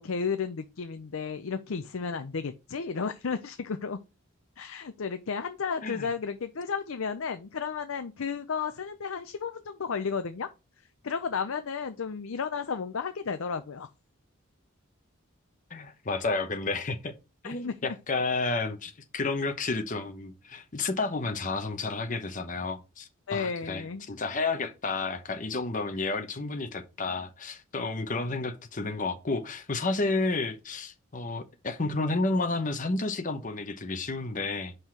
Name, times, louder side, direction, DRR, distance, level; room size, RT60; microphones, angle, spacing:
voice 1, 0.0-4.0 4.6-10.5 11.0-13.9 17.4-18.0 23.3-24.1, left 5 dB, 80° left, 0.6 m, -33 dB
voice 2, 15.7-17.1 17.4-34.7, left 3 dB, 40° left, 0.9 m, -31 dB
5.8 x 5.5 x 4.6 m
head